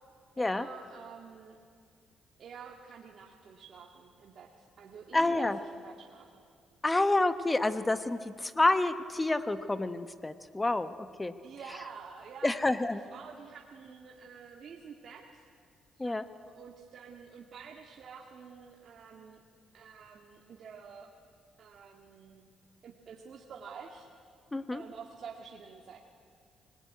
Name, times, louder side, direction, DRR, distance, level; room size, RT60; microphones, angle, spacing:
voice 1, 0.4-1.6 2.4-6.5 11.4-12.5 12.9-15.4 16.0-19.4 19.7-21.1 21.6-22.5 22.8-24.1 24.7-26.0, right 6 dB, 60° right, 1 dB, 1.9 m, -49 dB
voice 2, 5.1-5.6 6.8-11.3 12.4-13.0 16.0-16.3 24.5-24.8, left 2 dB, 15° left, 12 dB, 1.0 m, -28 dB
25.0 x 20.5 x 9.5 m, 2.2 s
cardioid pair, 90°, 0 cm